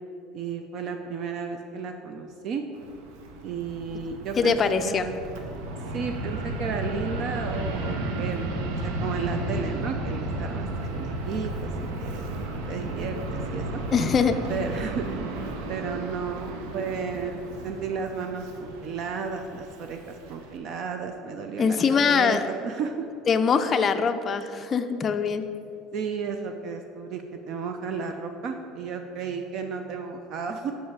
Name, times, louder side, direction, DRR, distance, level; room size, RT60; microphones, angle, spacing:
voice 1, 0.3-2.6 3.4-4.6 4.8-5.2 5.9-12.3 12.7-13.8 14.5-15.1 15.7-23.1 25.9-30.7, right 5 dB, 45° right, 6 dB, 0.4 m, -33 dB
Fixed-wing aircraft airplane, 2.7-20.6, right 2 dB, 85° right, 0.8 m, -33 dB
voice 2, 4.4-5.1 13.9-14.4 21.6-22.5 23.3-25.4, left 6 dB, 25° left, 8 dB, 0.4 m, -23 dB
5.5 x 5.5 x 6.7 m, 2.6 s
cardioid pair, 150°, 0 cm